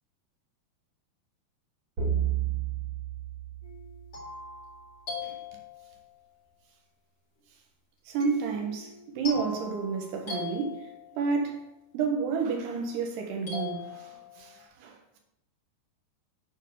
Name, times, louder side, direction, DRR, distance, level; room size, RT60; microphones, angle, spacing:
sound 1, 2.0-4.4, right 9 dB, 30° right, 3.0 m, -31 dB
sound 2, 3.6-6.1 8.2-11.4 13.5-14.6, left 5 dB, 35° left, 3.9 m, -41 dB
voice 1, 5.2-5.6 8.1-11.6 11.9-15.2, right 5 dB, 80° right, 3.5 m, -31 dB
9.9 x 4.7 x 6.9 m
omnidirectional pair, 4.8 m